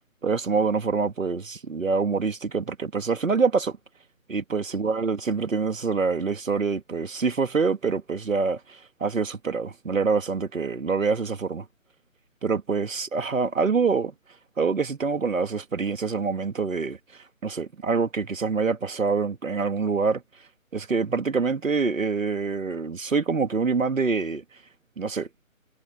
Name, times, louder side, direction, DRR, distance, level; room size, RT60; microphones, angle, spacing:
voice 1, 0.2-3.8 4.3-11.7 12.4-14.1 14.6-17.0 17.4-20.2 20.7-24.4 25.0-25.3, right 4 dB, 70° right, 2.6 m, -25 dB
figure-of-eight pair, 155°, 41 cm